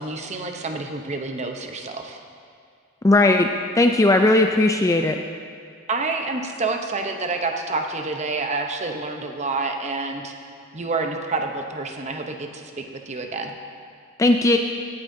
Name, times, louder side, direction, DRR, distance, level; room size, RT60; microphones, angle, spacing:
voice 1, 0.0-2.2 5.9-10.3 10.7-13.6, right 3 dB, 30° right, 4 dB, 0.7 m, -28 dB
voice 2, 3.0-3.5 3.7-5.2 14.2-14.6, left 2 dB, 15° left, 4 dB, 0.3 m, -17 dB
16.5 x 9.0 x 2.7 m, 2.3 s
head